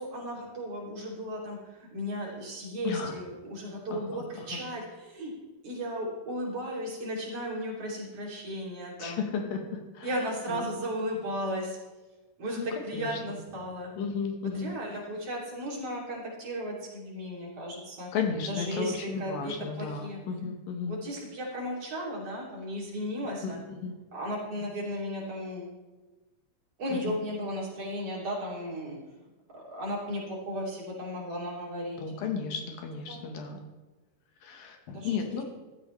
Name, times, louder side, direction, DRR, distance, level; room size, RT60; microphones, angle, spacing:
voice 1, 0.0-5.3 5.6-9.3 10.0-11.8 12.4-13.9 14.5-18.1 18.5-20.2 20.9-23.6 24.1-25.7 26.8-29.0 29.5-32.0 33.1-33.2 34.9-35.1, equal, 45° right, -5 dB, 3.9 m, -35 dB
voice 2, 2.8-3.2 3.9-4.6 9.0-10.1 10.5-10.6 12.6-12.7 12.9-13.4 14.0-14.7 18.1-21.0 23.4-23.9 26.9-27.1 32.0-33.6 34.4-35.4, left 6 dB, 85° left, 3 dB, 3.2 m, -34 dB
14.0 x 13.0 x 3.3 m, 1.2 s
omnidirectional pair, 3.9 m